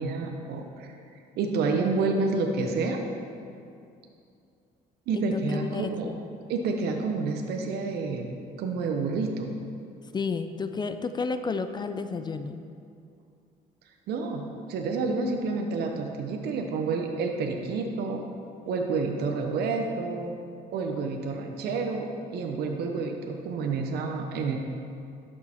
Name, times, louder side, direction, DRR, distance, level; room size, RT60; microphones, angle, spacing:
voice 1, 0.0-3.0 5.1-6.1 6.5-9.5 14.1-18.2 18.6-20.3 20.7-24.6, right 4 dB, 70° right, 3 dB, 0.9 m, -29 dB
voice 2, 5.1-6.2 10.1-12.6, left 4 dB, 25° left, 9 dB, 0.4 m, -31 dB
12.0 x 6.5 x 4.3 m, 2.5 s
cardioid pair, 110°, 17 cm